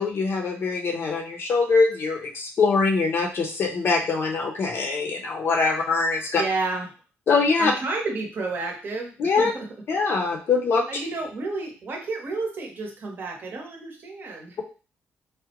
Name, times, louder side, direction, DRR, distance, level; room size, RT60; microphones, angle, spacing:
voice 1, 0.0-6.4 7.3-7.7 9.2-9.5 9.9-10.8, left 4 dB, 55° left, 2 dB, 0.6 m, -23 dB
voice 2, 6.3-6.9 7.6-9.7 10.9-14.6, right 3 dB, 45° right, 3 dB, 0.8 m, -31 dB
3.7 x 2.1 x 2.8 m, 0.36 s
cardioid pair, 125°, 5 cm